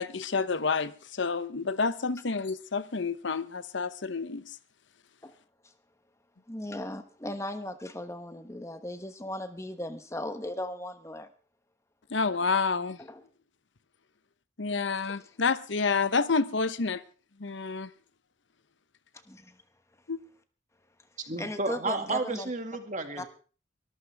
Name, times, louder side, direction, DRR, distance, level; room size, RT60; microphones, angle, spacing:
voice 1, 0.0-4.5 12.1-13.0 14.6-17.0 17.4-17.9 20.1-20.2, left 4 dB, 70° left, 0.9 m, -29 dB
voice 2, 6.5-11.3 13.0-13.2 15.1-15.2 19.3-19.6 21.4-22.5 23.2-23.3, left 1 dB, 15° left, 1.0 m, -37 dB
voice 3, 21.3-23.3, right 3 dB, 40° right, 2.2 m, -32 dB
22.5 x 14.0 x 3.5 m
head